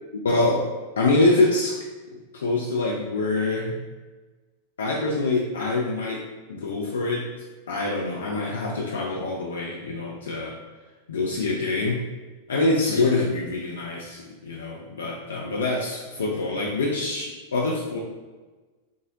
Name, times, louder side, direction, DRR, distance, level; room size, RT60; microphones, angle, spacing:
voice 1, 0.2-0.7 1.0-1.8 2.3-3.7 4.8-6.2 6.5-7.3 7.7-10.6 11.1-12.0 12.5-18.0, left 2 dB, 70° left, -2 dB, 0.4 m, -25 dB
3.6 x 2.0 x 3.6 m, 1.3 s
figure-of-eight pair, 90°, 0 cm